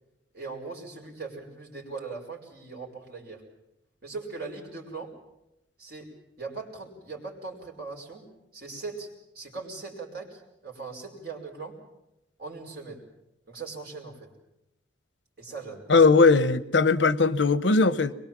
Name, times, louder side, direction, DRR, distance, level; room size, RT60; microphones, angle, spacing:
voice 1, 0.3-3.4 4.0-5.1 5.8-6.1 6.4-8.2 8.5-9.1 9.3-11.8 12.4-13.0 13.5-14.3 15.4-16.1, right 4 dB, 55° right, 5.2 m, -39 dB
voice 2, 15.9-18.1, left 4 dB, 80° left, 0.9 m, -19 dB
22.5 x 22.5 x 7.4 m
head